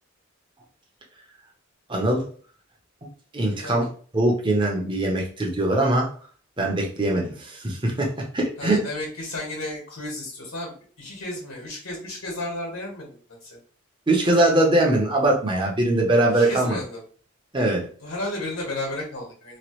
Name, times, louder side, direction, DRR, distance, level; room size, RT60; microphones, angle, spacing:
voice 1, 1.9-2.3 3.3-3.9 4.1-6.1 6.6-8.8 14.1-16.8 17.5-17.9, right 1 dB, 25° right, 0 dB, 0.7 m, -22 dB
voice 2, 8.6-13.6 16.3-17.0 18.0-19.6, left 1 dB, 80° left, -2 dB, 1.4 m, -33 dB
3.0 x 2.4 x 3.0 m, 0.42 s
head